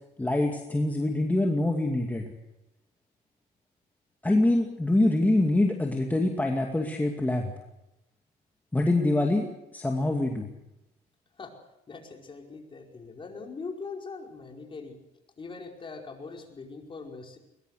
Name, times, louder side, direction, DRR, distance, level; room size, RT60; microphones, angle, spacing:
voice 1, 0.2-2.3 4.2-7.5 8.7-9.5 9.7-10.5, left 2 dB, 10° left, 1 dB, 2.4 m, -25 dB
voice 2, 11.9-15.0 15.4-17.4, left 4 dB, 30° left, 2 dB, 5.1 m, -41 dB
22.0 x 21.0 x 6.6 m, 0.90 s
cardioid pair, 110°, 17 cm